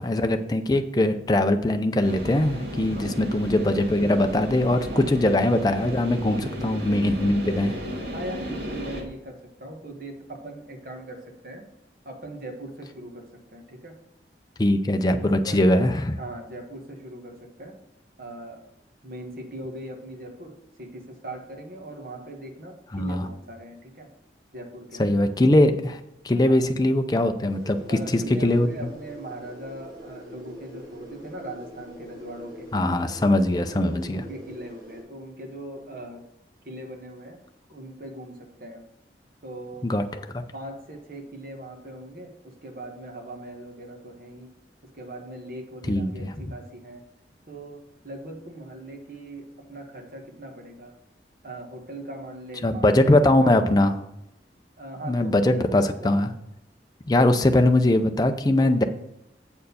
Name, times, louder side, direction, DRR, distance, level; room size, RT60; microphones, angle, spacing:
voice 1, 0.0-7.7 14.6-16.2 22.9-23.2 25.0-26.0 26.2-27.8 28.1-28.7 32.7-34.2 39.8-40.0 40.3-40.4 45.9-46.3 52.6-54.0 55.0-56.3 57.1-58.8, left 1 dB, 20° left, 6 dB, 0.5 m, -21 dB
sound 1, 2.0-9.0, equal, 85° right, 1.8 m, -34 dB
voice 2, 8.1-11.7 12.0-14.0 15.0-15.6 16.2-17.8 18.2-18.7 19.0-24.1 24.5-25.1 26.4-26.6 27.9-32.7 33.3-36.3 36.6-37.4 37.7-38.8 39.4-39.9 40.5-44.5 44.8-47.0 47.4-50.9 51.4-53.8 54.8-56.1, right 1 dB, 55° right, 2 dB, 1.5 m, -40 dB
sound 2, 27.5-35.0, equal, 25° right, 3.0 m, -44 dB
7.6 x 4.5 x 6.9 m, 0.87 s
head